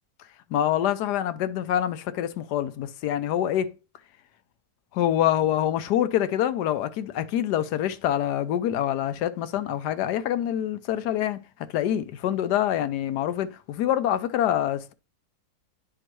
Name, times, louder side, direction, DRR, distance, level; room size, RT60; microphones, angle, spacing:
voice 1, 0.5-3.7 4.9-11.4 11.7-14.9, left 11 dB, 75° left, 1.2 m, -25 dB
10.0 x 3.8 x 3.0 m
omnidirectional pair, 1.8 m